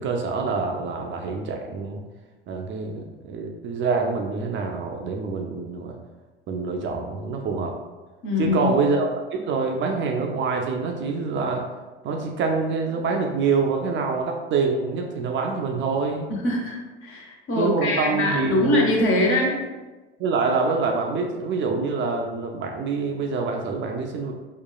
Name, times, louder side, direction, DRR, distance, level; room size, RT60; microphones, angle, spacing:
voice 1, 0.0-2.0 2.5-5.9 6.5-7.7 8.4-11.6 12.0-16.3 17.5-18.9 20.2-24.3, right 4 dB, 40° right, 2 dB, 0.4 m, -26 dB
voice 2, 8.2-8.7 16.4-19.6, left 1 dB, 45° left, -1 dB, 0.8 m, -23 dB
2.9 x 2.2 x 2.2 m, 1.2 s
hypercardioid pair, 70°, 30 cm